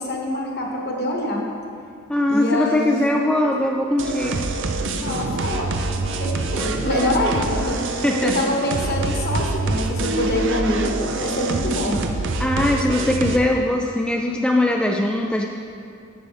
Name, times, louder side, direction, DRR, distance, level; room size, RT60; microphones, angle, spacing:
voice 1, 0.0-1.4 2.3-3.1 4.9-12.0, left 1 dB, 50° left, 0 dB, 1.3 m, -25 dB
voice 2, 2.1-4.5 8.0-8.3 12.4-15.5, left 1 dB, 5° left, 0 dB, 0.3 m, -21 dB
sound 1, 4.0-13.4, right 3 dB, 65° right, 0.6 m, -25 dB
10.5 x 7.1 x 3.4 m, 2.3 s
head